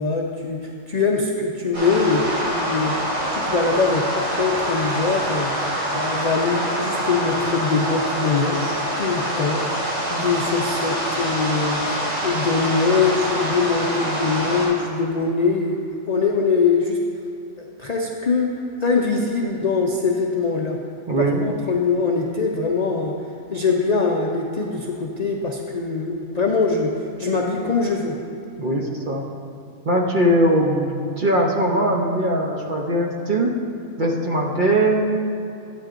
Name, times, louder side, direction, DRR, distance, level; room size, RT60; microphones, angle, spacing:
voice 1, 0.0-3.0 3.3-9.6 10.1-17.0 17.6-18.5 18.8-20.8 21.4-23.2 23.5-28.2, left 4 dB, 55° left, 0 dB, 0.4 m, -23 dB
sound 1, 1.7-14.7, right 1 dB, 80° right, 2.8 m, -25 dB
voice 2, 21.1-21.4 28.6-29.2 29.8-33.6 34.0-35.4, right 1 dB, 45° right, -1 dB, 0.8 m, -20 dB
11.5 x 8.8 x 2.5 m, 2.7 s
omnidirectional pair, 1.4 m